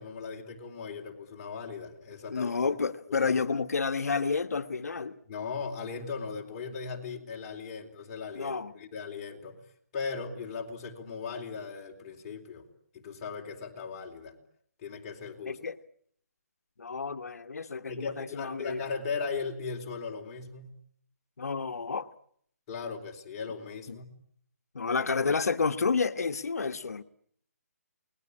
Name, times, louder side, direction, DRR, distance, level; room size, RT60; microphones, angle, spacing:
voice 1, 0.0-2.8 3.1-3.3 5.3-9.6 9.9-12.7 12.9-14.3 14.8-15.6 17.9-20.8 22.7-24.1, left 5 dB, 25° left, 1 dB, 4.1 m, -38 dB
voice 2, 2.3-5.2 8.3-8.7 15.4-15.8 16.8-18.8 21.4-22.1 23.9-24.0 24.7-27.0, left 5 dB, 75° left, 9 dB, 1.4 m, -30 dB
29.0 x 20.0 x 10.0 m, 0.67 s
hypercardioid pair, 165°, 9 cm